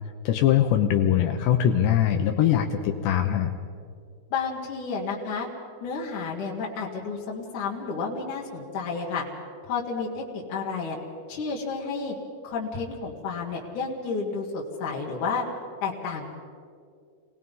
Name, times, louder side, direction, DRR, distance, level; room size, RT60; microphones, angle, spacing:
voice 1, 0.3-3.5, left 10 dB, 75° left, 5 dB, 2.7 m, -22 dB
voice 2, 4.3-5.5 5.8-9.2 9.6-11.0 11.3-12.1 12.4-15.4 15.8-16.3, left 4 dB, 55° left, -3 dB, 2.6 m, -31 dB
28.0 x 19.0 x 5.5 m, 2.3 s
omnidirectional pair, 5.7 m